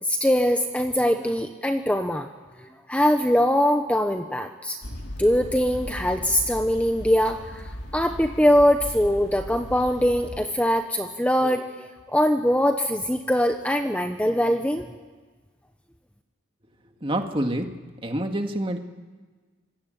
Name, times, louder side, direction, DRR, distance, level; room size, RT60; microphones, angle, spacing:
voice 1, 0.0-2.3 2.6-4.8 5.2-14.8, equal, 5° left, 5 dB, 1.0 m, -22 dB
sound 1, 4.8-10.4, equal, 55° left, 2.5 m, -38 dB
voice 2, 17.0-17.7 18.0-18.8, right 1 dB, 25° right, 4 dB, 2.0 m, -26 dB
26.0 x 21.5 x 9.2 m, 1.4 s
head